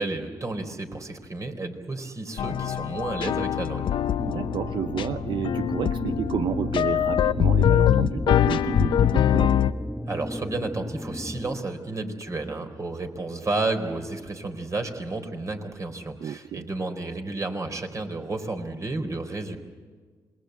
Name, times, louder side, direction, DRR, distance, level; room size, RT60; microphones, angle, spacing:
voice 1, 0.0-3.9 10.1-19.6, right 2 dB, 40° right, 5 dB, 4.1 m, -31 dB
sound 1, 2.4-9.7, left 10 dB, 75° left, 0.8 m, -23 dB
sound 2, 4.2-11.6, equal, ahead, 1.2 m, -34 dB
voice 2, 4.3-9.6 16.2-16.7, right 9 dB, 70° right, 11 dB, 0.7 m, -31 dB
27.0 x 21.5 x 8.0 m, 1.5 s
supercardioid pair, 60°, 8 cm